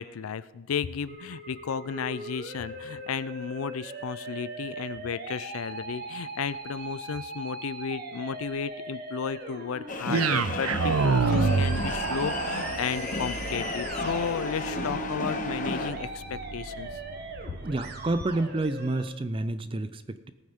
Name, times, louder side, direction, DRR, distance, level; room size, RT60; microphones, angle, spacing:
voice 1, 0.0-16.9, left 6 dB, 85° left, 16 dB, 0.5 m, -34 dB
Musical instrument, 1.1-19.0, right 2 dB, 50° right, 1.4 m, -40 dB
sound 1, 9.9-15.9, left 3 dB, 40° left, 0.9 m, -33 dB
sound 2, 10.1-18.3, right 4 dB, 85° right, 0.5 m, -29 dB
voice 2, 17.6-20.3, right 2 dB, 25° right, 13 dB, 0.5 m, -29 dB
19.0 x 9.3 x 3.6 m, 1.2 s
head